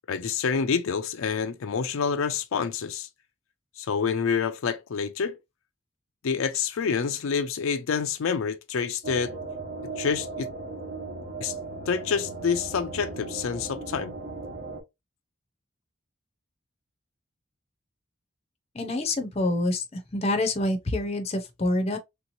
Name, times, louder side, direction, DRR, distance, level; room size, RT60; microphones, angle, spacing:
voice 1, 0.1-3.1 3.8-5.3 6.2-9.3 10.0-10.5 11.4-11.5 11.9-14.1, left 6 dB, 85° left, 0.5 m, -27 dB
sound 1, 9.0-14.8, right 3 dB, 50° right, 1.0 m, -37 dB
voice 2, 18.7-22.0, left 1 dB, 30° left, 0.6 m, -27 dB
3.3 x 2.9 x 2.6 m
head